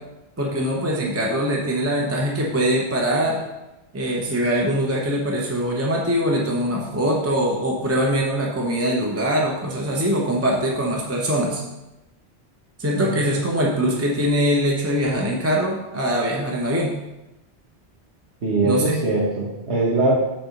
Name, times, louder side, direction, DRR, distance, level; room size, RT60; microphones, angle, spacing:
voice 1, 0.4-3.4 3.9-11.6 12.8-17.0 18.6-18.9, equal, 15° right, -2 dB, 0.9 m, -22 dB
voice 2, 18.4-20.1, right 2 dB, 85° right, -6 dB, 1.7 m, -21 dB
7.7 x 3.9 x 6.5 m, 0.98 s
omnidirectional pair, 1.1 m